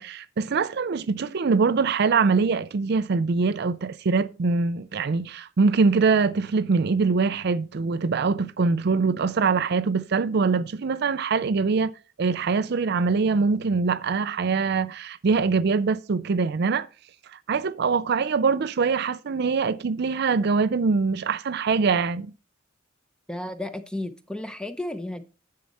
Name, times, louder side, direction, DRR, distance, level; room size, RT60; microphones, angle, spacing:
voice 1, 0.0-11.9 12.2-16.9 17.3-22.3, right 4 dB, 55° right, 0.4 m, -23 dB
voice 2, 23.3-25.2, left 1 dB, 5° left, 0.7 m, -33 dB
10.5 x 7.5 x 4.2 m
head